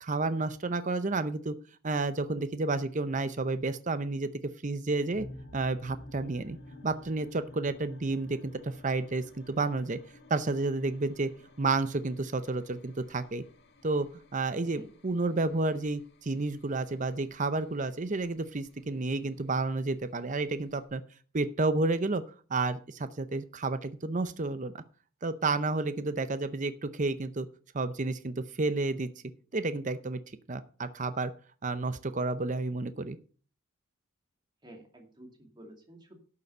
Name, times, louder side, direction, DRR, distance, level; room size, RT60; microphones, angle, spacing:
voice 1, 0.0-1.5 1.8-4.3 4.6-5.3 5.5-6.6 6.8-10.0 10.3-11.3 11.6-13.4 13.8-14.1 14.3-21.0 21.3-22.2 22.5-24.8 25.2-27.5 27.7-29.1 29.5-30.2 30.5-31.3 31.6-33.2, right 3 dB, 35° right, 12 dB, 0.7 m, -31 dB
sound 1, 5.1-20.9, left 1 dB, 50° left, 1.8 m, -53 dB
voice 2, 34.6-36.2, right 1 dB, 20° right, 2 dB, 2.4 m, -51 dB
12.0 x 6.9 x 5.5 m, 0.40 s
head